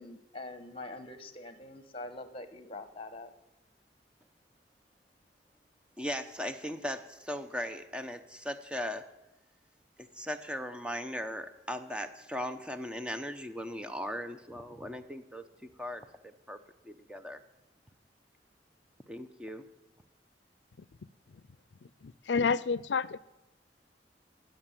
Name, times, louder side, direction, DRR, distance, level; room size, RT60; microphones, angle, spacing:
voice 1, 0.0-3.3, left 2 dB, 30° left, 1.3 m, -44 dB
voice 2, 6.0-9.1 10.0-15.5 15.8-16.6 16.8-17.4 19.1-19.7, equal, 5° right, 0.9 m, -38 dB
voice 3, 22.0-23.2, left 5 dB, 80° left, 0.5 m, -29 dB
20.0 x 8.0 x 7.6 m
head